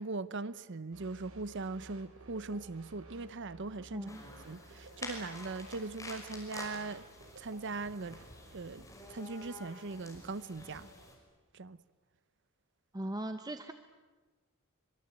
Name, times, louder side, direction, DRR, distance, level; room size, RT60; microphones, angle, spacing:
voice 1, 0.0-4.1 4.4-7.0 7.4-8.2 8.5-10.9 11.5-11.8, right 3 dB, 60° right, 0.8 m, -40 dB
sound 1, 0.9-8.9, right 2 dB, 80° right, 3.6 m, -56 dB
voice 2, 3.9-4.2 12.9-13.7, right 1 dB, 20° right, 0.9 m, -39 dB
sound 2, 4.1-11.1, left 2 dB, 15° left, 5.8 m, -49 dB
25.5 x 22.5 x 9.1 m
head